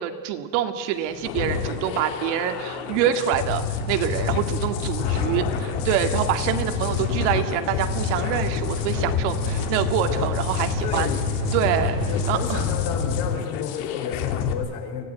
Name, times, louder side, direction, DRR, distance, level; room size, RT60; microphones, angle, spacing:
voice 1, 0.0-11.1 11.5-12.0 12.3-12.6, right 10 dB, 75° right, 7 dB, 2.1 m, -26 dB
sound 1, 1.1-12.8, right 10 dB, 60° right, 1.8 m, -38 dB
sound 2, 1.2-14.5, left 7 dB, 80° left, 2.6 m, -27 dB
voice 2, 4.9-5.6 10.8-11.2 12.1-15.0, left 7 dB, 55° left, 4 dB, 4.6 m, -32 dB
24.5 x 17.0 x 9.2 m, 1.5 s
cardioid pair, 180°, 37 cm